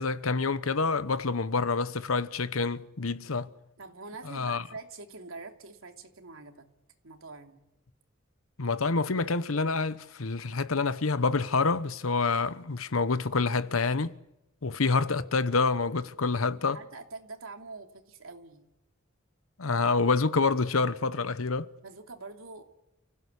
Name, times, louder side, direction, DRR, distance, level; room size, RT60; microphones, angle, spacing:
voice 1, 0.0-3.5 4.3-4.6 8.6-14.2 14.6-16.8 19.6-21.7, left 4 dB, 85° left, 1.0 m, -27 dB
voice 2, 3.8-6.7 7.0-7.6 16.7-18.7 21.8-22.6, right 3 dB, 80° right, 2.9 m, -45 dB
30.0 x 16.0 x 8.4 m
head